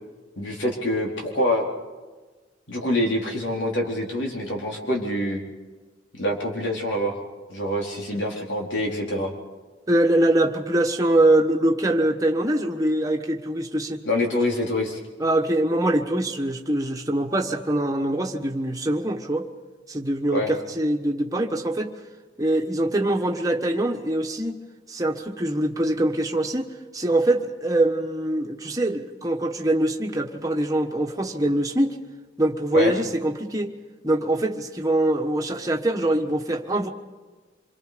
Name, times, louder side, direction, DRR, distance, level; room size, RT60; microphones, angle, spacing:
voice 1, 0.4-1.7 2.7-5.4 6.1-7.2 7.5-9.3 14.0-15.0 20.3-20.5 32.7-32.9, left 1 dB, 80° left, -1 dB, 4.2 m, -25 dB
voice 2, 9.9-14.0 15.2-19.5 19.9-21.9 22.4-24.6 24.9-26.7 26.9-32.0 32.4-33.7 34.0-36.9, right 1 dB, 20° right, 2 dB, 1.4 m, -23 dB
27.0 x 23.5 x 5.2 m, 1.3 s
head